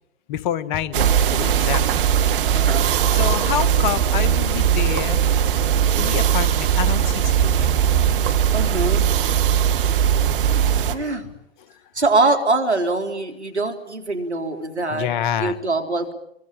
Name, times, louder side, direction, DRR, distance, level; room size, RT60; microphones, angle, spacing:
voice 1, 0.3-1.0 1.3-1.8 3.1-5.2 6.0-7.8 14.9-15.6, left 10 dB, 45° left, 13 dB, 1.5 m, -27 dB
sound 1, 0.9-11.0, right 9 dB, 55° right, 2.2 m, -19 dB
voice 2, 2.5-2.9 8.5-9.1 10.8-11.3 11.9-15.1 15.4-16.1, right 3 dB, 80° right, 5 dB, 3.7 m, -23 dB
24.0 x 23.5 x 8.7 m, 0.80 s
figure-of-eight pair, 105°, 33 cm